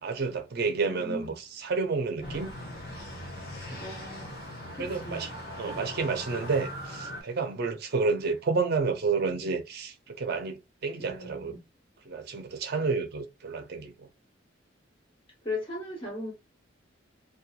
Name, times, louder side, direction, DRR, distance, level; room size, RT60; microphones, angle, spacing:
voice 1, 0.0-2.5 3.7-3.9 4.8-5.3 5.6-11.6 12.1-14.1, right 4 dB, 55° right, 0.5 m, -30 dB
voice 2, 0.8-1.3 3.8-4.3 4.8-5.2 5.6-5.8 11.0-11.6 15.4-16.3, left 2 dB, 30° left, 1.3 m, -37 dB
sound 1, 2.2-7.2, equal, 55° left, 1.2 m, -40 dB
2.9 x 2.2 x 2.2 m
head